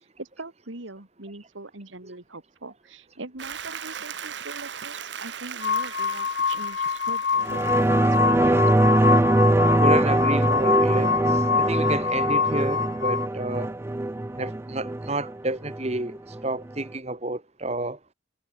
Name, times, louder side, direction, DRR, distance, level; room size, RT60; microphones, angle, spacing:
voice 1, 0.2-8.6, right 2 dB, 85° right, 2.3 m, -42 dB
Applause, 3.4-8.4, right 8 dB, 65° right, 1.2 m, -38 dB
sound 1, 5.6-13.3, left 6 dB, 70° left, 0.8 m, -25 dB
sound 2, 7.4-16.4 16.8-16.9, right 1 dB, 15° right, 0.4 m, -22 dB
voice 2, 9.8-13.7 14.3-18.0, right 2 dB, 35° right, 1.8 m, -30 dB
head